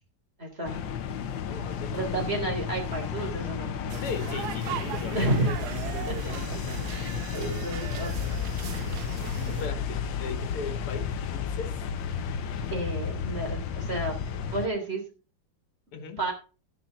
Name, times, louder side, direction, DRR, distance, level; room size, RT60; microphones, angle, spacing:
voice 1, 0.4-0.9 1.9-3.7 5.1-5.6 6.1-6.2 6.9-8.1 12.7-14.2 14.5-15.0 16.2-16.3, right 2 dB, 25° right, 1 dB, 3.7 m, -31 dB
sound 1, 0.6-14.7, left 7 dB, 65° left, 1.5 m, -32 dB
voice 2, 1.5-2.2 4.0-5.3 9.5-11.8 15.9-16.2, left 5 dB, 85° left, 7 dB, 2.4 m, -38 dB
sound 2, 3.9-9.7, right 11 dB, 65° right, 1.0 m, -38 dB
14.0 x 10.0 x 4.0 m, 0.35 s
omnidirectional pair, 2.4 m